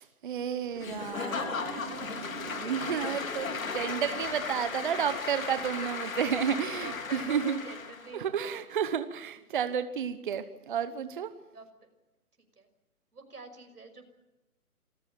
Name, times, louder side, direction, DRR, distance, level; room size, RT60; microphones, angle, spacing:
voice 1, 0.0-7.6 8.1-11.3, right 8 dB, 35° right, 11 dB, 1.0 m, -32 dB
Applause / Crowd, 0.8-8.1, left 5 dB, 60° left, 3.4 m, -36 dB
voice 2, 1.2-1.6 6.6-8.6 11.5-11.9 12.6-12.7 13.1-14.0, right 3 dB, 85° right, 7 dB, 5.9 m, -47 dB
27.0 x 15.0 x 9.0 m, 1.0 s
hypercardioid pair, 150°, 45 cm